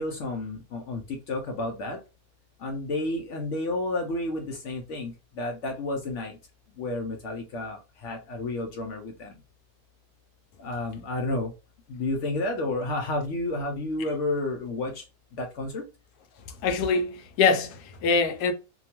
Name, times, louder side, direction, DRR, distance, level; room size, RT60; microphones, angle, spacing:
voice 1, 0.0-2.0 2.6-6.4 6.8-9.4 10.6-11.5 11.9-15.0 15.3-15.8, left 2 dB, 65° left, 0.8 m, -31 dB
voice 2, 16.6-18.5, left 4 dB, 90° left, 1.1 m, -24 dB
2.8 x 2.2 x 2.8 m
omnidirectional pair, 1.6 m